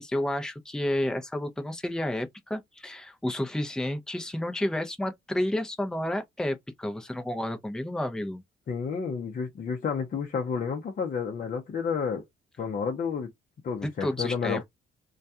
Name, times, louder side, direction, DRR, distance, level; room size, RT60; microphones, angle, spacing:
voice 1, 0.0-8.4 13.8-14.6, left 1 dB, 5° left, 0.5 m, -31 dB
voice 2, 8.7-12.2 12.6-13.3 13.6-14.6, left 6 dB, 45° left, 0.6 m, -30 dB
2.3 x 2.2 x 2.6 m
cardioid pair, 90°, 20 cm